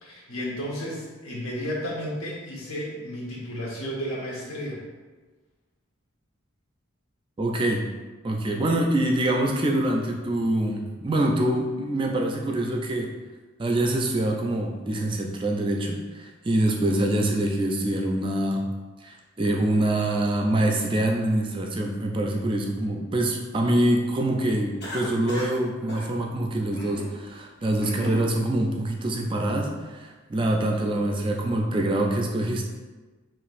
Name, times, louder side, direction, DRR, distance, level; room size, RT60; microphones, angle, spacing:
voice 1, 0.0-4.8 8.4-8.7 27.6-27.7, equal, 80° left, -3 dB, 1.1 m, -33 dB
voice 2, 7.4-7.8 8.2-13.1 13.6-18.6 19.0-32.6, right 1 dB, 25° right, 1 dB, 0.3 m, -25 dB
Cough, 24.8-25.6 25.9-26.1 26.7-27.1 27.6-28.3, left 1 dB, 50° left, 0.9 m, -36 dB
4.9 x 3.0 x 2.5 m, 1.3 s
head